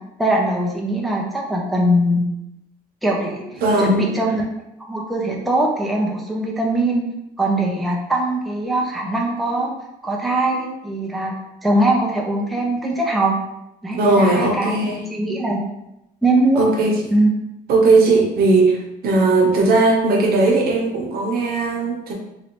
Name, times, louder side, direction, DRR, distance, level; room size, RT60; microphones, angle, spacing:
voice 1, 0.2-2.3 3.0-3.5 3.8-4.4 4.8-7.1 7.4-9.7 10.0-11.3 11.6-13.4 13.8-14.8 15.1-15.6 16.2-16.7 17.1-17.3, right 1 dB, ahead, -2 dB, 0.5 m, -21 dB
voice 2, 3.6-4.0 13.9-15.0 16.6-16.9 17.7-22.1, right 2 dB, 65° right, 0 dB, 0.8 m, -17 dB
3.1 x 2.5 x 3.0 m, 0.88 s
cardioid pair, 110°, 17 cm